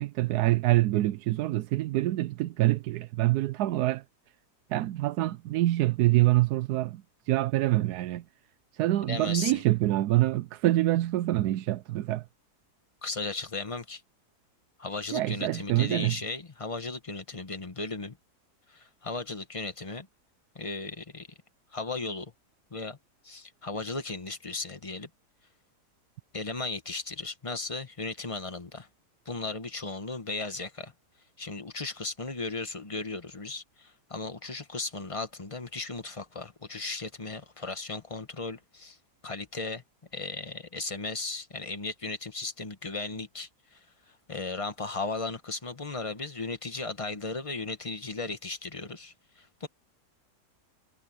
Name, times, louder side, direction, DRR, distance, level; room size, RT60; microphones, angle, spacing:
voice 1, 0.0-4.0 4.7-8.2 8.7-12.2 15.1-16.2, right 16 dB, 80° right, 1.1 m, -26 dB
voice 2, 9.0-9.6 13.0-14.0 14.8-18.2 18.7-20.1 20.5-21.3 21.7-22.3 22.7-23.0 23.2-25.1 26.3-28.9 29.2-30.9 31.4-39.0 39.2-39.8 40.1-43.8 44.1-49.7, left 3 dB, 20° left, 1.2 m, -36 dB
omnidirectional pair, 1.7 m